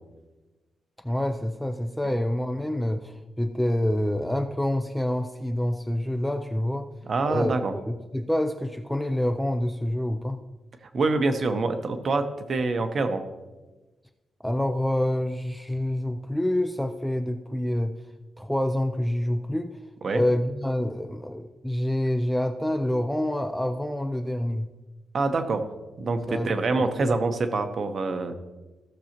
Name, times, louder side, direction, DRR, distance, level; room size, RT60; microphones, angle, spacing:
voice 1, 1.0-6.9 7.2-10.4 14.4-18.0 18.4-19.8 20.1-24.7 26.3-26.5 26.7-27.1, left 1 dB, ahead, 6 dB, 0.3 m, -27 dB
voice 2, 7.1-7.7 10.9-13.2 20.0-20.2 25.1-25.6 26.0-28.3, right 3 dB, 40° right, 8 dB, 0.7 m, -25 dB
15.0 x 6.8 x 2.9 m, 1.2 s
wide cardioid pair, 175°, 0 cm